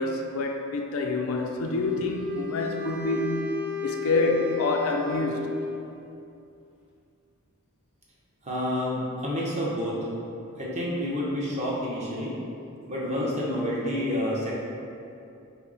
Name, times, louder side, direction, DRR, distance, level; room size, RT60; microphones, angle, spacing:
voice 1, 0.0-3.6 3.8-5.5, left 2 dB, 75° left, 3 dB, 0.4 m, -27 dB
Wind instrument woodwind instrument, 1.5-5.9, left 5 dB, 5° right, 0.4 m, -34 dB
voice 2, 8.4-10.0 10.6-12.3 12.9-14.5, left 1 dB, 30° right, -6 dB, 0.8 m, -29 dB
5.5 x 2.1 x 4.0 m, 2.6 s
head